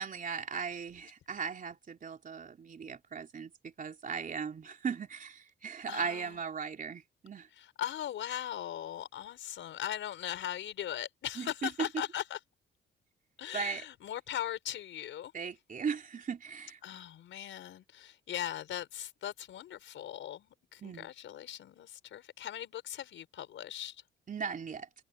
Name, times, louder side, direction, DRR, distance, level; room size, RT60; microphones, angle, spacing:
voice 1, 0.0-7.5 11.4-11.9 13.5-13.9 15.3-16.8 20.8-21.1 24.3-24.9, right 6 dB, 45° right, 3.5 m, -38 dB
voice 2, 5.9-6.4 7.6-12.4 13.4-15.3 16.8-24.0, left 11 dB, 75° left, 5.4 m, -39 dB
cardioid pair, 90°, 20 cm